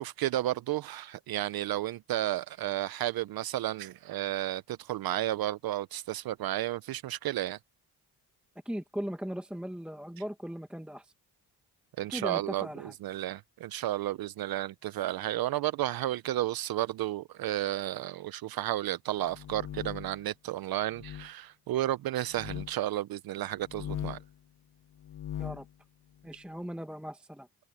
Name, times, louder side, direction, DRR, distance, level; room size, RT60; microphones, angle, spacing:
voice 1, 0.0-7.6 12.0-24.2, right 14 dB, 60° right, 0.5 m, -32 dB
voice 2, 8.6-11.1 12.1-12.9 25.4-25.7 26.2-27.5, equal, 5° right, 0.9 m, -38 dB
sound 1, 19.2-20.2 20.9-21.3 22.3-22.7 23.6-24.3 25.0-25.7, left 11 dB, 50° left, 0.9 m, -39 dB
cardioid pair, 145°, 40 cm